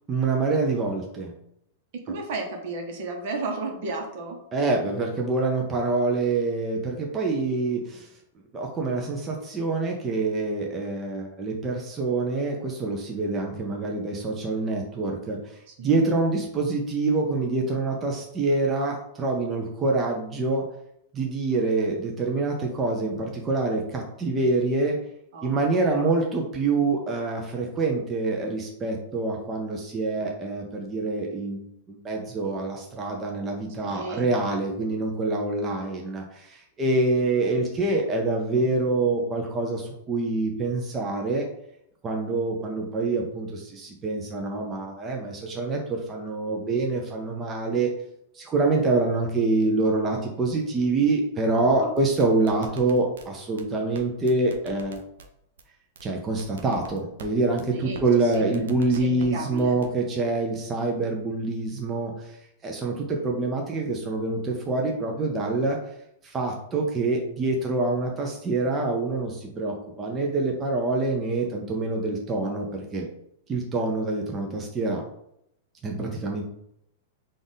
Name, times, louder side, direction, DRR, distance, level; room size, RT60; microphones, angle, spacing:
voice 1, 0.1-1.3 4.5-8.1 8.5-20.6 21.1-25.0 25.4-41.4 42.0-47.9 48.3-55.0 56.0-65.8 66.2-73.1 73.5-75.0 75.8-76.4, right 3 dB, 25° right, 0 dB, 0.6 m, -26 dB
voice 2, 1.9-4.4 15.7-16.0 25.3-26.1 33.8-34.3 51.8-51.9 57.7-58.5 58.8-59.8, right 3 dB, 60° right, 2 dB, 1.0 m, -34 dB
sound 1, 52.0-53.3 53.6-53.7 53.9-54.0 54.3-55.3 55.6-55.7 56.0-56.1 56.4-57.3 57.6-57.7 57.9-58.0 58.3-59.3 59.6-59.9, right 5 dB, 80° right, 0.5 m, -44 dB
3.5 x 2.5 x 3.9 m, 0.76 s
hypercardioid pair, 120°, 0 cm